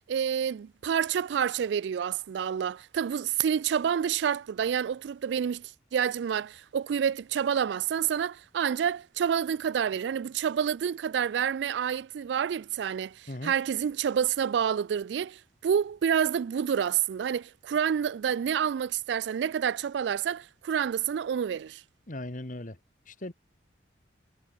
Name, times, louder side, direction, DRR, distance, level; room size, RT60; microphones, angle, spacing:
voice 1, 0.1-21.8, right 8 dB, 70° right, 0.3 m, -28 dB
voice 2, 22.1-22.8 23.1-23.3, left 1 dB, 45° left, 1.9 m, -38 dB
head